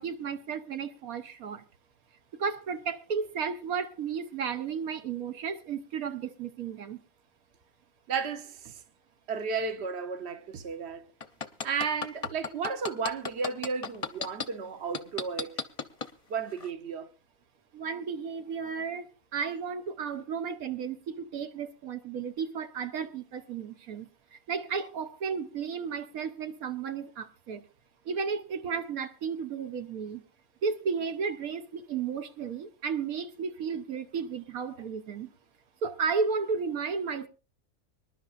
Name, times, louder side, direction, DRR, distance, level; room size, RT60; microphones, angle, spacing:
voice 1, 0.0-1.6 2.4-7.0 17.7-24.1 24.3-27.6 28.1-30.2 30.6-35.3 35.8-37.3, right 6 dB, 80° right, 1.3 m, -33 dB
voice 2, 8.1-8.8 9.3-11.1 11.6-15.7 16.3-17.1, right 5 dB, 50° right, 1.2 m, -33 dB
sound 1, 11.2-14.5 14.9-16.1 16.6-16.7, left 5 dB, 35° left, 0.7 m, -33 dB
24.5 x 11.0 x 2.5 m
omnidirectional pair, 1.5 m